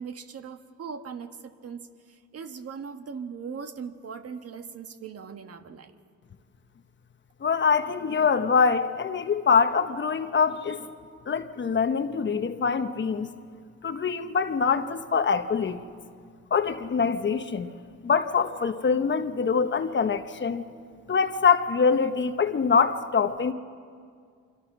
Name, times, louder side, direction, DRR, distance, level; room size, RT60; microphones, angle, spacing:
voice 1, 0.0-5.9, right 6 dB, 50° right, 7 dB, 1.5 m, -39 dB
voice 2, 7.4-10.9 11.3-13.4 13.8-15.8 16.5-17.7 18.0-20.6 21.1-23.5, left 5 dB, 40° left, 9 dB, 1.1 m, -24 dB
25.0 x 25.0 x 6.1 m, 2.1 s
cardioid pair, 90°, 30 cm